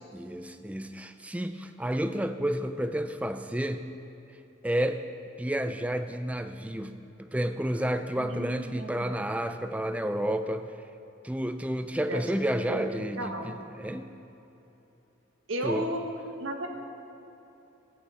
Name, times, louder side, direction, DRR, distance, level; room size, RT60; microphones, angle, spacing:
voice 1, 0.1-3.9 4.6-5.0 5.4-10.6 11.2-14.1 15.6-15.9, right 1 dB, 5° right, 9 dB, 0.4 m, -31 dB
voice 2, 8.2-9.1 12.1-12.2 12.7-13.5 15.5-16.0 16.4-16.7, right 1 dB, 90° right, 3 dB, 1.4 m, -34 dB
14.5 x 9.0 x 5.6 m, 2.9 s
head